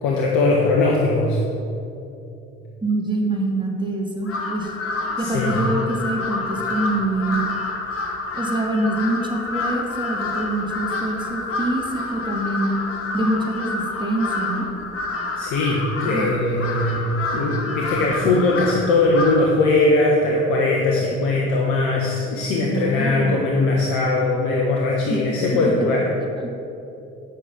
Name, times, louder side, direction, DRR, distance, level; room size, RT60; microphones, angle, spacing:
voice 1, 0.0-1.4 5.2-5.6 15.4-26.1, left 2 dB, 70° left, -1 dB, 1.2 m, -20 dB
voice 2, 2.8-4.7 5.2-7.4 8.3-12.8 13.1-14.7 16.1-16.3 22.6-23.4 25.1-25.2 26.2-26.5, right 1 dB, 15° right, -1 dB, 2.4 m, -25 dB
Crow, 4.2-19.6, left 3 dB, 45° left, 1.7 m, -28 dB
8.7 x 6.2 x 7.1 m, 2.8 s
hypercardioid pair, 50°, 32 cm